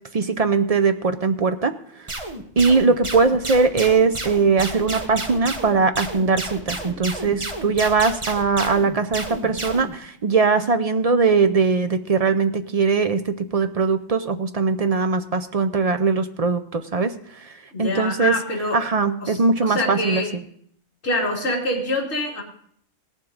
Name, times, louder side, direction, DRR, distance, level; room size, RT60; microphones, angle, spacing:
voice 1, 0.1-1.7 2.6-17.5 17.8-18.3 18.7-20.2, right 4 dB, 55° right, 8 dB, 0.4 m, -20 dB
sound 1, 2.1-9.9, right 2 dB, 25° right, 1.0 m, -31 dB
voice 2, 17.7-18.8 19.2-20.3 21.0-22.4, left 2 dB, 55° left, -3 dB, 2.8 m, -25 dB
18.0 x 7.4 x 3.8 m, 0.63 s
omnidirectional pair, 1.4 m